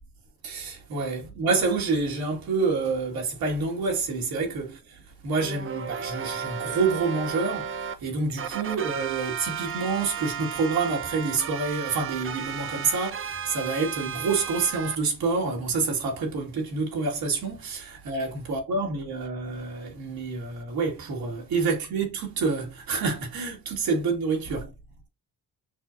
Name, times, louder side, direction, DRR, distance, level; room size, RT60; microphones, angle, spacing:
voice 1, 0.4-24.7, right 4 dB, 80° right, 1.9 m, -28 dB
sound 1, 5.4-8.0 8.4-15.0, right 7 dB, 40° right, 0.5 m, -34 dB
6.1 x 2.3 x 2.5 m
cardioid pair, 100°, 35 cm